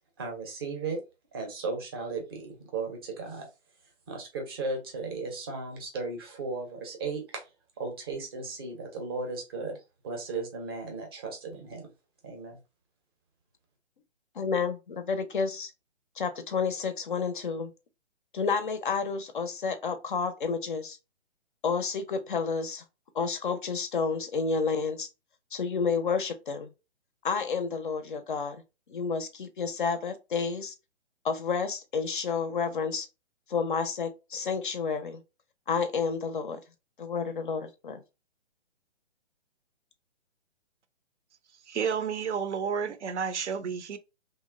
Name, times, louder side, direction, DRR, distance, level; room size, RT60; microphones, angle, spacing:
voice 1, 0.2-1.0 1.3-3.5 4.1-7.5 7.8-11.9 12.2-12.6, right 3 dB, 20° right, 0.5 m, -36 dB
voice 2, 14.3-15.7 16.2-17.7 18.3-21.0 21.6-22.8 23.1-25.1 25.5-26.7 27.2-28.6 28.9-30.7 31.2-33.1 33.5-35.2 35.7-36.6 37.0-38.0, left 5 dB, 45° left, 0.4 m, -30 dB
voice 3, 41.7-44.0, right 6 dB, 75° right, 0.5 m, -31 dB
2.8 x 2.0 x 2.3 m
figure-of-eight pair, 135°, 35 cm